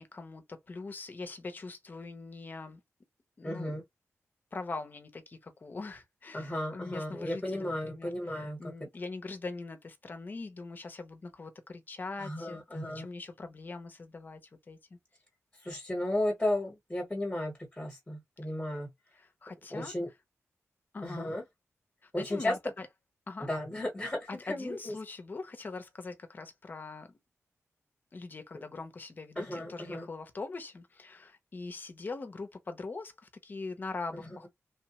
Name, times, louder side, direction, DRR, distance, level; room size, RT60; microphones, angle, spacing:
voice 1, 0.0-2.8 3.4-3.7 4.5-14.4 14.7-15.0 19.2-19.9 20.9-21.3 22.2-22.9 23.3-23.5 24.3-27.2 28.1-34.5, left 3 dB, 35° left, 0.6 m, -42 dB
voice 2, 3.4-3.8 6.3-8.7 12.2-13.1 15.6-18.9 19.7-20.1 21.0-21.4 22.1-22.5 23.4-25.0 29.4-30.1 34.1-34.2, left 1 dB, 10° left, 1.0 m, -34 dB
3.1 x 2.1 x 2.9 m
wide cardioid pair, 160°, 5 cm